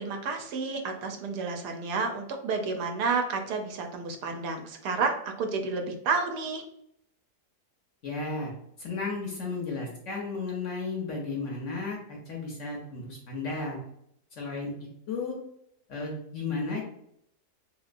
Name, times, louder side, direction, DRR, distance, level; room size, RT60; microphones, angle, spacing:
voice 1, 0.0-6.6, right 4 dB, 80° right, 5 dB, 1.1 m, -30 dB
voice 2, 8.0-8.5 8.8-13.8 14.3-15.4 15.9-16.9, left 3 dB, 65° left, -1 dB, 0.8 m, -34 dB
3.0 x 2.8 x 2.5 m, 0.74 s
omnidirectional pair, 1.8 m